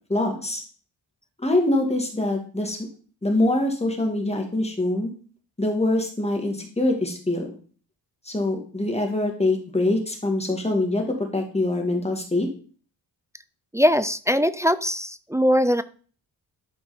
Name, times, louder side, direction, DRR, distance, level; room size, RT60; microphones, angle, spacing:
voice 1, 0.1-0.6 1.4-2.8 3.2-5.1 5.6-7.5 8.3-12.5, left 2 dB, 15° left, 2 dB, 2.4 m, -24 dB
voice 2, 13.7-15.8, equal, 10° right, 13 dB, 0.4 m, -21 dB
12.0 x 4.7 x 4.4 m, 0.41 s
cardioid pair, 90°, 40 cm